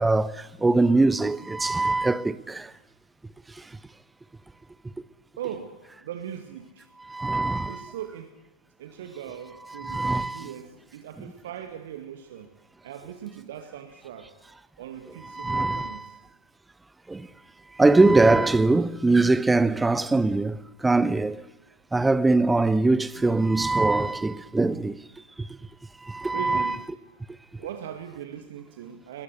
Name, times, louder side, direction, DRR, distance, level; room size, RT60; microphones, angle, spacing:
voice 1, 0.0-2.7 7.1-7.9 9.7-10.5 15.3-16.1 17.1-17.3 17.8-20.6 20.8-21.4 21.9-25.0 26.1-26.8, right 2 dB, 10° right, 0.9 m, -22 dB
voice 2, 5.4-5.8 6.0-6.9 7.7-8.4 8.8-12.5 12.8-14.3 14.8-16.1 26.3-26.8 27.6-29.2, right 9 dB, 55° right, 2.0 m, -39 dB
22.0 x 21.0 x 8.3 m
figure-of-eight pair, 90°, 0 cm